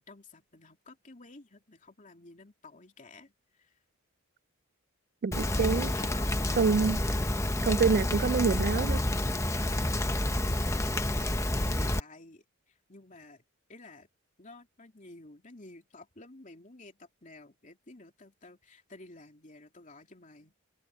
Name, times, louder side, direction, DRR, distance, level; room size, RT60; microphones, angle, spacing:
voice 1, 0.0-3.8 5.8-7.0 8.0-8.1 10.6-13.4 13.7-14.1 14.4-20.5, left 2 dB, 35° left, 3.1 m, -52 dB
voice 2, 5.2-5.9 6.6-7.0 7.7-9.0, right 5 dB, 45° right, 0.4 m, -26 dB
Rain, 5.3-12.0, left 1 dB, 15° left, 0.9 m, -29 dB
head